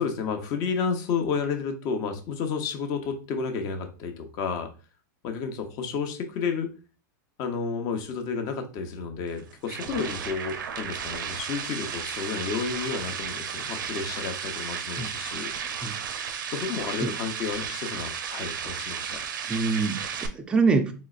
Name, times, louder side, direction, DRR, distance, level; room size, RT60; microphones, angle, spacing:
voice 1, 0.0-4.7 5.2-6.7 7.4-15.5 16.5-19.2, left 5 dB, 35° left, 5 dB, 0.7 m, -31 dB
sound 1, 9.3-20.3, right 7 dB, 90° right, 0.6 m, -34 dB
voice 2, 19.5-20.9, right 4 dB, 10° right, 5 dB, 0.4 m, -25 dB
3.9 x 3.0 x 2.4 m, 0.35 s
supercardioid pair, 145°, 10 cm